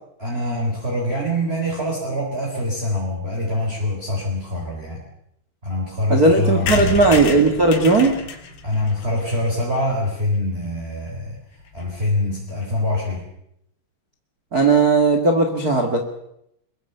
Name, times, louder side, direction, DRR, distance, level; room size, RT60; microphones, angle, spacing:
voice 1, 0.2-5.0 5.6-7.1 8.6-11.4 11.7-13.3, left 1 dB, 15° right, -1 dB, 3.6 m, -24 dB
voice 2, 6.1-8.2 14.5-16.0, right 3 dB, 90° right, 4 dB, 0.8 m, -16 dB
sound 1, 6.7-10.3 10.8-10.9 11.1-11.2 11.4-11.5 11.7-11.9, left 5 dB, 65° left, 4.5 m, -30 dB
23.0 x 22.0 x 6.9 m, 0.77 s
omnidirectional pair, 5.6 m